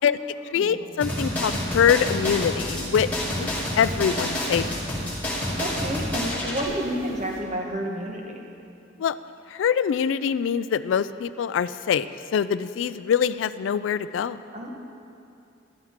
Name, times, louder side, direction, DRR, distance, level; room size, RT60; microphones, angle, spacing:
voice 1, 0.0-1.0 5.2-5.3 5.6-8.4 14.5-14.8, equal, 40° right, 1 dB, 1.2 m, -31 dB
voice 2, 0.5-3.1 3.4-3.5 3.8-4.7 9.0-9.2 9.5-14.4, left 7 dB, 75° left, 15 dB, 0.3 m, -24 dB
sound 1, 1.0-6.6, left 1 dB, 10° left, 2.5 m, -28 dB
sound 2, 1.4-7.4, right 1 dB, 85° right, 1.7 m, -45 dB
13.0 x 11.5 x 3.6 m, 2.6 s
head